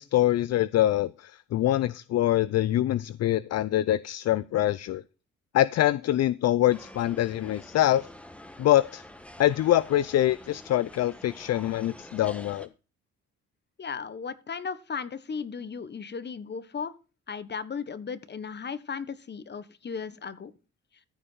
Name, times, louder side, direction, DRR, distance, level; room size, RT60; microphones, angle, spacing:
voice 1, 0.0-5.0 5.5-8.1 8.6-9.0 9.4-12.7, left 13 dB, 55° left, 0.5 m, -24 dB
sound 1, 6.7-12.7, left 1 dB, 5° left, 1.4 m, -47 dB
voice 2, 13.8-16.9 17.3-20.5, left 6 dB, 35° left, 1.3 m, -36 dB
14.5 x 5.2 x 5.5 m
cardioid pair, 90°, 30 cm